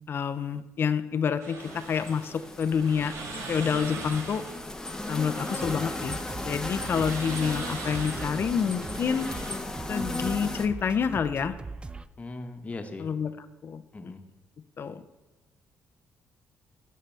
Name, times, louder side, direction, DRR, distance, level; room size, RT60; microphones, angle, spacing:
voice 1, 0.1-3.1 3.5-4.4 5.1-6.2 6.4-9.3 9.9-11.5 13.0-13.3 13.6-13.8 14.8-15.0, left 6 dB, 45° left, 11 dB, 0.6 m, -28 dB
sound 1, 1.4-9.6, right 3 dB, 75° right, 1.5 m, -41 dB
sound 2, 1.6-10.7, left 2 dB, 10° left, 0.8 m, -36 dB
sound 3, 5.6-12.1, right 3 dB, 20° right, 0.3 m, -41 dB
voice 2, 12.2-13.1 13.9-14.2, left 3 dB, 30° left, 5 dB, 1.1 m, -39 dB
13.0 x 6.5 x 3.4 m, 1.2 s
cardioid pair, 105°, 5 cm